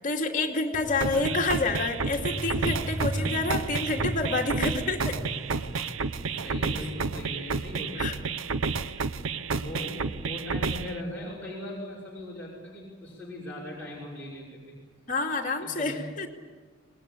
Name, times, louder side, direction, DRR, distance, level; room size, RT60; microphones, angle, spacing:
voice 1, 0.0-5.1 8.0-8.1 15.1-16.3, left 3 dB, 40° left, 2 dB, 2.6 m, -28 dB
Motorcycle, 0.7-8.4, right 1 dB, 15° right, 4.0 m, -37 dB
voice 2, 0.9-1.4 3.1-3.4 6.1-8.2 9.5-14.7 15.6-16.0, left 1 dB, 10° left, -8 dB, 5.9 m, -40 dB
sound 1, 1.0-11.0, right 4 dB, 75° right, 0.8 m, -31 dB
26.0 x 20.5 x 8.6 m, 1.4 s
head